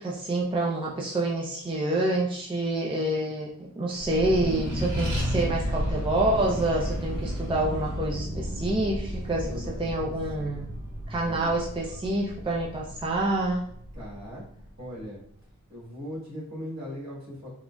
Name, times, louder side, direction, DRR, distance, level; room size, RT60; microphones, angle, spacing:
voice 1, 0.0-10.7 11.1-13.7, right 1 dB, 15° right, -3 dB, 0.4 m, -27 dB
Accelerating revving vroom, 3.9-14.9, equal, 80° right, 1.0 m, -33 dB
voice 2, 9.4-10.6 11.2-11.6 13.9-14.4 14.8-15.2 15.7-17.5, equal, 60° right, -7 dB, 1.4 m, -39 dB
3.7 x 2.1 x 2.3 m, 0.67 s
wide cardioid pair, 50°, 31 cm